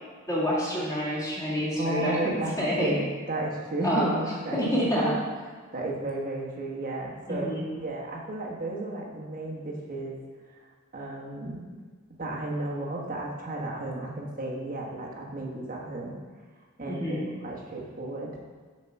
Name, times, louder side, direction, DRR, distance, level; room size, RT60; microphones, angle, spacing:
voice 1, 0.3-2.9 3.8-4.1 4.5-5.1 7.3-7.7 16.9-17.3, equal, 15° left, -7 dB, 2.1 m, -27 dB
voice 2, 1.8-5.2 5.7-10.1 10.9-11.8 12.2-16.2 16.8-18.4, right 2 dB, 40° right, -2 dB, 1.4 m, -33 dB
7.6 x 4.9 x 5.8 m, 1.5 s
head